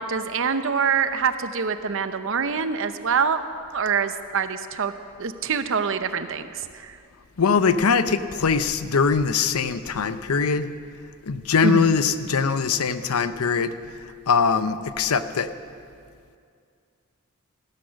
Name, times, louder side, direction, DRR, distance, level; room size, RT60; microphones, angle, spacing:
voice 1, 0.0-3.4 3.7-4.9 5.2-7.0 11.6-11.9, right 6 dB, 65° right, 10 dB, 0.8 m, -25 dB
voice 2, 7.4-10.7 11.2-13.7 14.3-15.5, left 5 dB, 85° left, 12 dB, 0.7 m, -22 dB
15.5 x 12.5 x 6.4 m, 2.3 s
head